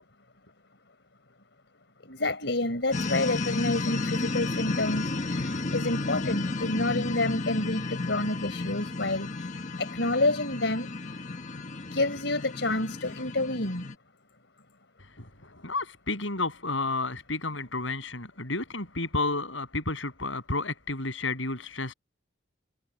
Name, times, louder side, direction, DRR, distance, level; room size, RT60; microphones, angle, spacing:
voice 1, 2.0-9.3 9.8-10.9 11.9-13.9, left 2 dB, 65° left, 4.9 m, -29 dB
sound 1, 2.9-14.0, left 3 dB, 40° left, 1.3 m, -32 dB
voice 2, 15.2-21.9, left 3 dB, 80° left, 8.0 m, -31 dB
head